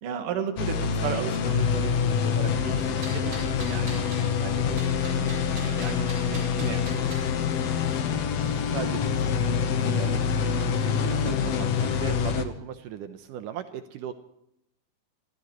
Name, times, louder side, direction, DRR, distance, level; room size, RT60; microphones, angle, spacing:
voice 1, 0.0-3.3 3.6-4.8 5.1-5.3 5.6-7.4, right 7 dB, 50° right, 5 dB, 2.0 m, -35 dB
sound 1, 0.6-12.4, left 7 dB, 75° left, 1.4 m, -26 dB
sound 2, 3.0-4.3 4.8-7.3, right 1 dB, 25° right, 7.9 m, -42 dB
voice 2, 8.4-14.1, right 10 dB, 75° right, 9 dB, 2.0 m, -38 dB
26.5 x 15.0 x 3.1 m, 0.77 s
omnidirectional pair, 4.6 m